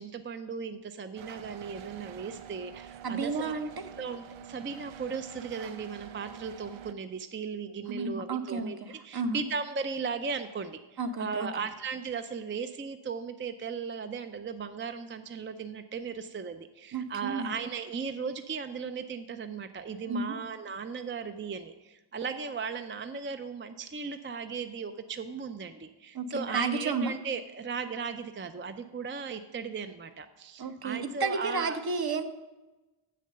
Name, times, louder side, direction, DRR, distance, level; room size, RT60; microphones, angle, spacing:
voice 1, 0.0-3.5 4.0-31.8, right 5 dB, 25° right, 9 dB, 0.4 m, -37 dB
sound 1, 1.2-6.9, right 8 dB, 70° right, 0.6 m, -47 dB
voice 2, 3.0-3.7 7.9-9.4 11.0-11.5 16.9-17.5 20.1-20.4 26.1-27.1 30.6-32.2, right 4 dB, 50° right, 8 dB, 0.9 m, -32 dB
7.6 x 6.7 x 6.6 m, 1.1 s
wide cardioid pair, 90°, 49 cm